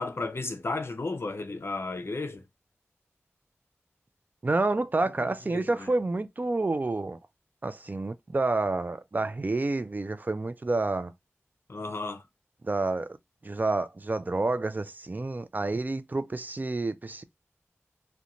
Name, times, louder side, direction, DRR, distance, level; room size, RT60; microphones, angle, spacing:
voice 1, 0.0-2.4 5.2-5.9 11.7-12.2, left 3 dB, 60° left, 0.5 m, -34 dB
voice 2, 4.4-7.2 7.6-11.1 12.6-13.2 13.4-17.2, right 2 dB, 40° right, 0.4 m, -29 dB
2.5 x 2.2 x 2.8 m
wide cardioid pair, 60°, 5 cm